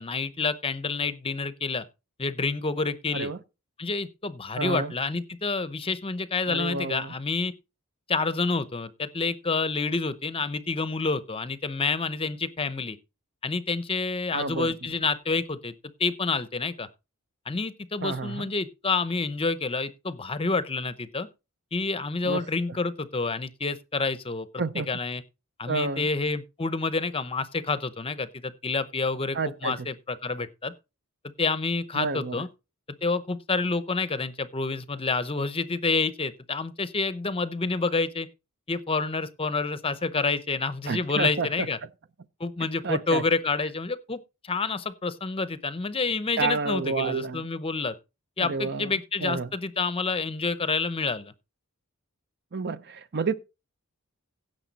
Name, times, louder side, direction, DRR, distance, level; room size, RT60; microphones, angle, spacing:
voice 1, 0.0-1.8 2.2-3.3 3.8-7.5 8.1-13.0 13.4-15.7 16.0-16.9 17.5-21.3 21.7-25.2 25.6-30.7 31.4-32.5 33.0-38.3 38.7-41.8 42.4-48.0 48.4-51.3, left 4 dB, 25° left, 0.7 m, -28 dB
voice 2, 4.6-4.9 6.5-7.1 14.3-14.7 18.0-18.5 22.2-22.4 24.6-24.9 25.7-26.1 29.3-29.9 32.0-32.4 40.9-41.5 42.8-43.2 46.4-47.4 48.4-48.9 49.2-49.5 52.5-53.3, right 4 dB, 50° right, 0.7 m, -29 dB
16.5 x 6.6 x 4.1 m
head